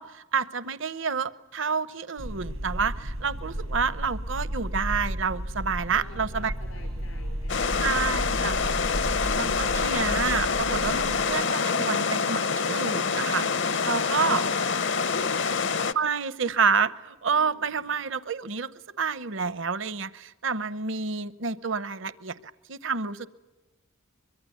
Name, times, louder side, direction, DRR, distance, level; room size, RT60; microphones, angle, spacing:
voice 1, 0.0-6.5 7.8-8.6 9.4-14.4 15.9-18.7 19.0-23.3, right 5 dB, 65° right, 16 dB, 0.9 m, -29 dB
sound 1, 2.2-11.3, equal, 90° right, 5.6 m, -33 dB
voice 2, 5.9-9.9 13.9-15.5 17.4-18.0, left 2 dB, 85° left, 2 dB, 4.8 m, -48 dB
sound 2, 7.5-15.9, left 5 dB, 60° left, 0.8 m, -26 dB
24.0 x 23.0 x 9.3 m, 1.1 s
head